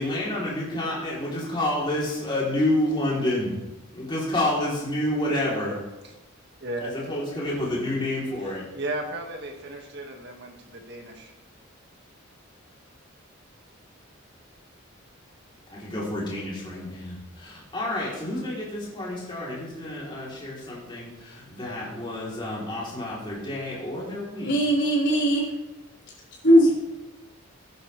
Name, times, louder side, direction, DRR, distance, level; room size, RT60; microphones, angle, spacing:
voice 1, 0.0-3.5 3.9-5.8 6.8-8.6 15.7-24.7 26.6-26.7, left 1 dB, 25° left, -6 dB, 3.3 m, -29 dB
voice 2, 6.6-6.9 8.7-11.3, right 2 dB, 55° right, 2 dB, 1.9 m, -34 dB
voice 3, 24.4-25.5 26.4-26.7, equal, 55° left, -7 dB, 4.6 m, -19 dB
15.0 x 10.5 x 3.3 m, 1.0 s
head